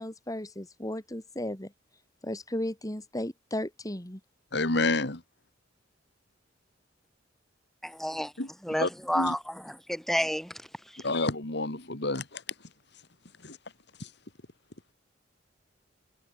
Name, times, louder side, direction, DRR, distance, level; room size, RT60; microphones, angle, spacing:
voice 1, 0.0-1.7 2.2-4.2, left 1 dB, 20° left, 3.1 m, -35 dB
voice 2, 4.5-5.2 8.4-8.5 8.8-8.9 9.1-9.3 11.0-12.4 13.4-13.6 14.0-14.1, left 2 dB, 60° left, 2.8 m, -29 dB
voice 3, 7.8-8.3 8.6-10.5 10.9-11.0, equal, ahead, 3.4 m, -30 dB
head